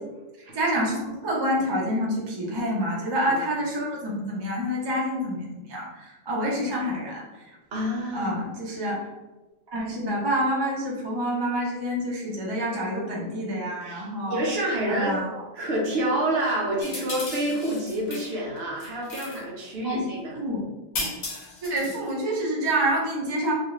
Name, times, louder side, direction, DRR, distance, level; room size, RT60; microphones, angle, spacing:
voice 1, 0.5-7.2 8.1-9.1 9.7-14.4 14.9-15.3 19.8-20.1 20.4-20.6 20.9-21.1 21.6-23.5, equal, 30° right, -4 dB, 0.4 m, -27 dB
voice 2, 7.7-8.3 13.8-15.2 15.5-20.4, right 1 dB, 65° right, -3 dB, 0.9 m, -28 dB
sound 1, 16.8-18.3 18.6-19.4 20.9-22.1, left 2 dB, 70° left, 1.0 m, -35 dB
2.5 x 2.3 x 3.0 m, 1.1 s
omnidirectional pair, 1.2 m